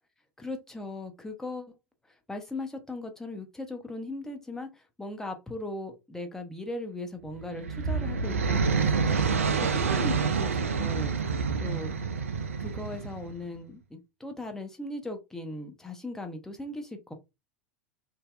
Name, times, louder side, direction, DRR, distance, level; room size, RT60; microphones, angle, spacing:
voice 1, 0.4-1.7 2.3-11.1 11.6-11.9 12.6-17.1, left 2 dB, 5° left, 0.7 m, -38 dB
sound 1, 7.3-13.4, right 5 dB, 75° right, 0.3 m, -28 dB
2.7 x 2.0 x 2.3 m
figure-of-eight pair, 80°, 7 cm